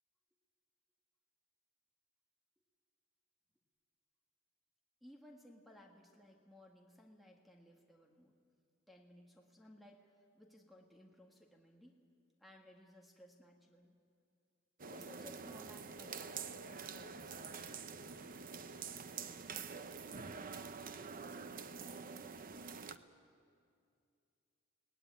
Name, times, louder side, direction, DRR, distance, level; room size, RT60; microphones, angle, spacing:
voice 1, 5.0-8.3 8.9-12.0 12.4-14.0 14.9-17.8, left 1 dB, ahead, 1 dB, 1.7 m, -60 dB
sound 1, 14.8-23.0, right 5 dB, 45° right, 0.8 m, -47 dB
22.0 x 18.0 x 9.7 m, 2.4 s
head